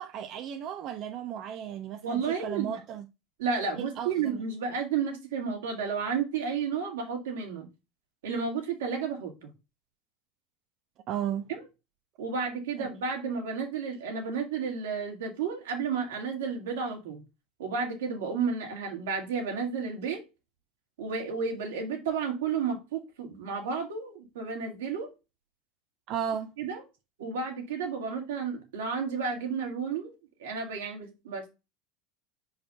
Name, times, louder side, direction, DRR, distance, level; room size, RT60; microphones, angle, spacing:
voice 1, 0.0-3.1 3.7-4.4 11.1-11.5 12.8-12.9 26.1-26.5, right 9 dB, 55° right, 0.7 m, -35 dB
voice 2, 2.0-2.7 3.4-7.7 8.2-9.5 11.5-11.6 12.2-17.2 17.6-20.2 21.0-25.1 26.6-26.8 27.2-31.5, right 5 dB, 85° right, 2.3 m, -32 dB
5.1 x 4.8 x 5.3 m
hypercardioid pair, 95°, 0 cm